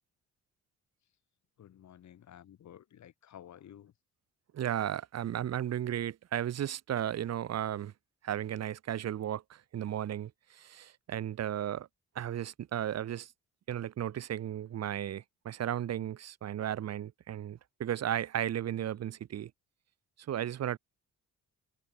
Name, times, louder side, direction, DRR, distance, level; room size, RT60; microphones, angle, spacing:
voice 1, 1.6-3.9, left 10 dB, 65° left, 7.8 m, -53 dB
voice 2, 4.5-7.9 8.2-11.9 12.1-13.3 13.7-19.5 20.3-20.8, right 11 dB, 55° right, 1.2 m, -35 dB
cardioid pair, 90°, 30 cm